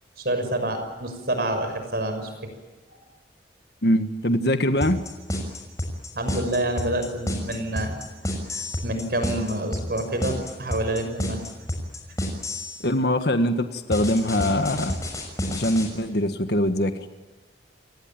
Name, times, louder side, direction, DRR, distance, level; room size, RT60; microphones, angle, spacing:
voice 1, 0.2-2.3 2.9-3.0 6.1-7.9 8.5-11.4, right 1 dB, 60° right, 7 dB, 6.2 m, -27 dB
voice 2, 3.8-5.0 12.8-15.0 15.5-17.1, left 1 dB, 65° left, 7 dB, 1.7 m, -23 dB
sound 1, 4.8-12.8 13.9-15.9, left 1 dB, 20° left, 6.5 m, -29 dB
29.0 x 19.5 x 9.1 m, 1.2 s
head